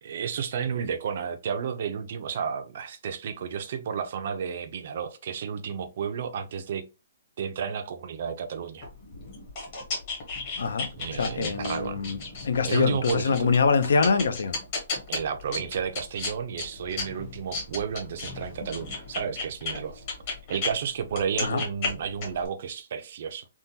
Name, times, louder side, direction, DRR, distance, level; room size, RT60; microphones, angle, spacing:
voice 1, 0.0-6.9 7.4-8.9 10.9-12.0 12.6-13.4 15.1-20.0 20.5-23.5, right 7 dB, 45° right, 0.5 m, -32 dB
sound 1, 8.8-20.7 21.1-22.5, left 3 dB, 30° left, 1.1 m, -34 dB
voice 2, 10.6-12.2 12.4-14.6 21.4-21.6, left 5 dB, 70° left, 0.6 m, -24 dB
3.5 x 2.2 x 2.7 m
hypercardioid pair, 175°, 0 cm